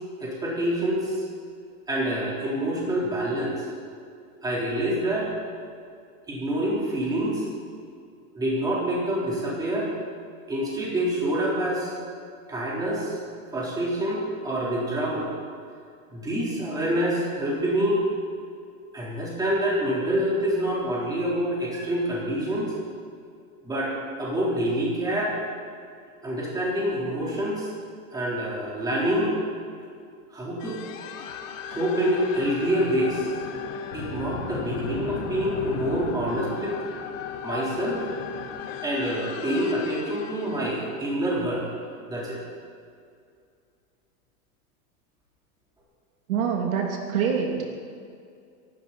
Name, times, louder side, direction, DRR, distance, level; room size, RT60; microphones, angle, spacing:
voice 1, 0.2-1.2 1.9-3.7 4.4-5.3 6.3-7.4 8.3-9.9 10.5-11.9 12.5-13.2 13.5-15.3 16.1-18.0 18.9-22.7 23.6-23.9 24.2-25.3 26.2-27.7 28.1-29.3 30.3-30.8 31.7-33.4 33.9-36.7 37.4-38.0 38.8-41.6 42.1-42.4, right 1 dB, 10° right, -6 dB, 4.0 m, -26 dB
sound 1, 30.6-41.8, left 7 dB, 60° left, 1.8 m, -36 dB
voice 2, 46.3-47.6, right 7 dB, 75° right, 1 dB, 2.8 m, -25 dB
25.0 x 12.5 x 4.3 m, 2.3 s
supercardioid pair, 165°, 43 cm